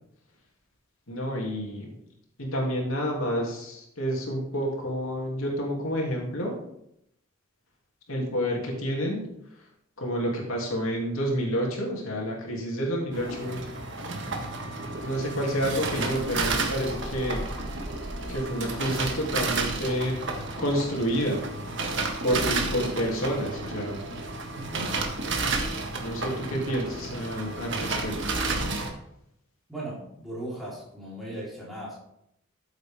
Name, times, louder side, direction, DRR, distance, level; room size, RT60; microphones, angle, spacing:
voice 1, 1.1-1.9 2.4-6.6 8.1-9.3 10.0-13.6 15.0-17.5 18.3-20.2 20.6-21.4 22.2-24.0 26.0-28.4, equal, 85° left, -1 dB, 2.9 m, -29 dB
sound 1, 13.1-28.9, right 3 dB, 60° right, 1.6 m, -31 dB
voice 2, 24.5-24.9 29.7-32.0, right 1 dB, ahead, -7 dB, 4.2 m, -37 dB
13.5 x 8.0 x 3.7 m, 0.76 s
head